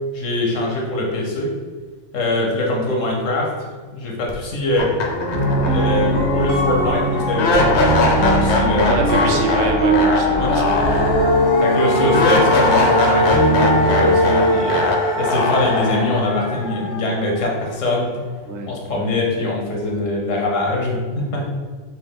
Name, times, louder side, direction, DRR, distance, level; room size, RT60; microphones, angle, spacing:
voice 1, 0.1-1.5 2.1-4.9 5.6-9.5 10.4-10.5 11.6-14.9 15.2-18.3 18.7-21.5, left 2 dB, 80° left, -1 dB, 1.3 m, -23 dB
sound 1, 4.3-4.4 4.8-17.8, left 2 dB, 65° left, 0.9 m, -20 dB
sound 2, 5.3-14.1, right 1 dB, 50° right, 1.3 m, -22 dB
sound 3, 5.5-11.2, left 1 dB, 85° right, 1.2 m, -30 dB
voice 2, 8.9-10.9 11.8-12.2 14.0-14.2 18.4-18.7 21.4-21.5, right 2 dB, 70° right, 3 dB, 0.9 m, -25 dB
4.3 x 2.9 x 3.6 m, 1.5 s
omnidirectional pair, 1.3 m